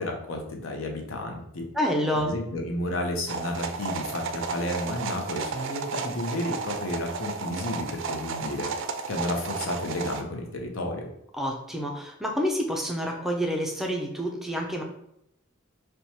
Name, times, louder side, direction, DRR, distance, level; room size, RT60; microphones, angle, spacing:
voice 1, 0.0-1.7 2.1-8.7 9.1-11.1, left 1 dB, 80° left, 2 dB, 0.7 m, -32 dB
voice 2, 1.7-2.4 11.3-14.8, equal, ahead, 1 dB, 0.4 m, -28 dB
sound 1, 3.3-10.2, right 4 dB, 65° right, 0.4 m, -33 dB
4.5 x 2.2 x 2.8 m, 0.77 s
head